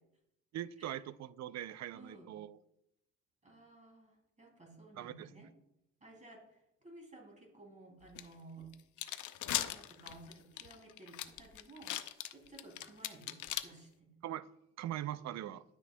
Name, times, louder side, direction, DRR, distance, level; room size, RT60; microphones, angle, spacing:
voice 1, 0.5-2.6 5.0-5.3 14.2-14.4 14.8-15.6, right 12 dB, 60° right, 0.5 m, -41 dB
voice 2, 1.9-2.3 3.4-5.5 6.0-8.8 9.5-12.0 12.3-14.1, right 2 dB, 25° right, 2.7 m, -55 dB
sound 1, 8.2-8.3 8.7-13.6, left 12 dB, 75° left, 0.6 m, -38 dB
13.0 x 6.3 x 2.2 m
cardioid pair, 90°, 30 cm